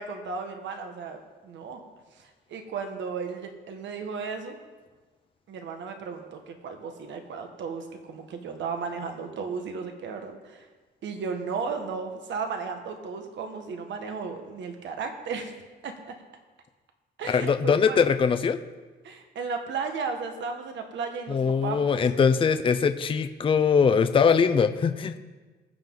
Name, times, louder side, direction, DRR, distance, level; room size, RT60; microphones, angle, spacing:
voice 1, 0.0-1.8 2.2-4.6 5.5-10.7 11.0-15.5 15.8-16.2 17.2-18.0 19.0-22.0, right 5 dB, 80° right, 5 dB, 1.3 m, -35 dB
voice 2, 17.3-18.6 21.3-25.1, left 6 dB, 30° left, 9 dB, 0.5 m, -22 dB
20.0 x 7.4 x 3.8 m, 1.3 s
cardioid pair, 135°, 19 cm